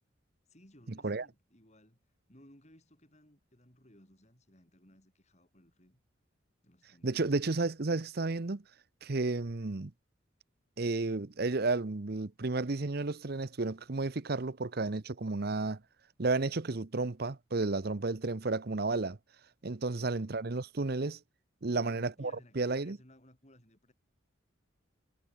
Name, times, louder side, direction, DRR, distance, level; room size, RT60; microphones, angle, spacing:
voice 1, 0.5-2.0 2.3-6.0 6.6-7.3 19.9-20.3 21.7-23.9, equal, 35° left, 7.8 m, -60 dB
voice 2, 7.0-8.6 9.0-9.9 10.8-15.8 16.2-19.2 19.6-21.2 21.6-23.0, right 3 dB, 50° right, 0.8 m, -32 dB
head